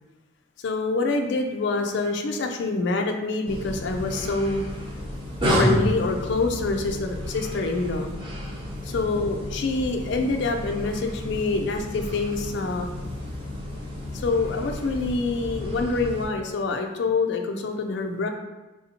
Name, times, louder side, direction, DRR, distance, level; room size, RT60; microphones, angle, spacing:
voice 1, 0.6-4.6 5.5-8.1 8.8-12.9 14.1-18.3, left 3 dB, 55° left, 4 dB, 0.3 m, -26 dB
sound 1, 3.5-16.3, left 1 dB, 25° right, 0.5 m, -31 dB
3.4 x 2.7 x 2.8 m, 1.1 s
head